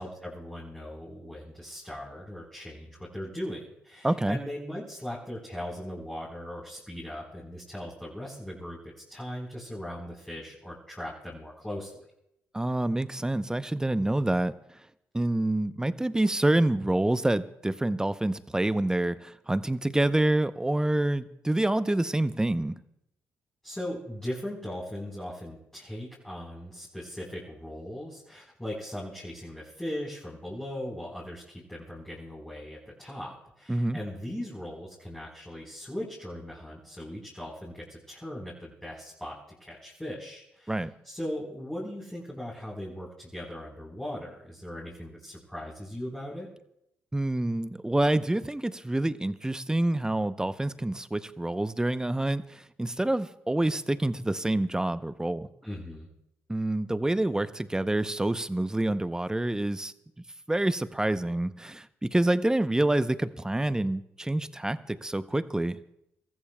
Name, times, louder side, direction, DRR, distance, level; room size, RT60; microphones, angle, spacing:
voice 1, 0.0-12.0 23.6-40.7 41.0-46.5 55.6-56.1, left 1 dB, 10° left, -6 dB, 4.1 m, -39 dB
voice 2, 4.0-4.4 12.5-14.5 15.1-22.8 33.7-34.0 40.7-40.9 47.1-55.5 56.5-59.9 60.5-65.8, right 1 dB, 10° right, 13 dB, 0.6 m, -27 dB
25.5 x 14.0 x 2.3 m, 0.80 s
supercardioid pair, 60°, 6 cm